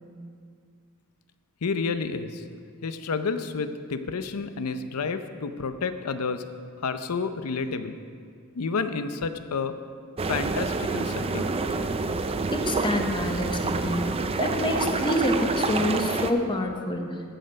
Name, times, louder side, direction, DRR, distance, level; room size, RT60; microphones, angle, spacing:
voice 1, 1.6-2.4 2.8-6.5 6.8-8.0 8.5-9.7 10.2-11.6, left 4 dB, 80° left, 10 dB, 0.6 m, -30 dB
sound 1, 10.2-16.3, right 3 dB, 25° right, 0.4 m, -27 dB
voice 2, 12.5-17.2, left 1 dB, 20° left, 3 dB, 0.9 m, -27 dB
14.5 x 6.5 x 5.2 m, 2.2 s
head